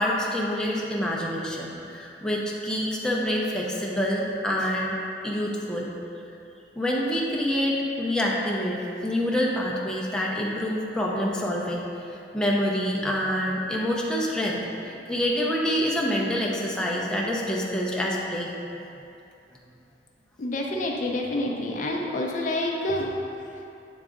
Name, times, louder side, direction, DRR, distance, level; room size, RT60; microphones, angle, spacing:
voice 1, 0.0-5.9 6.8-18.5, equal, 5° left, -4 dB, 0.6 m, -27 dB
voice 2, 20.4-23.1, left 1 dB, 50° left, 0 dB, 0.5 m, -28 dB
7.9 x 3.6 x 3.7 m, 2.7 s
head